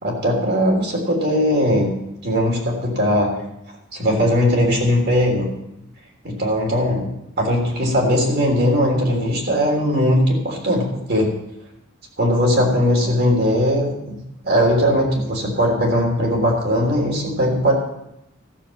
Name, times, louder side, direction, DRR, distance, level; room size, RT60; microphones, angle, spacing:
voice 1, 0.0-1.9 2.2-3.3 3.9-5.5 6.2-7.1 7.4-11.3 12.2-14.2 14.4-17.7, equal, 55° right, 0 dB, 3.4 m, -19 dB
14.0 x 7.2 x 7.2 m, 0.85 s
head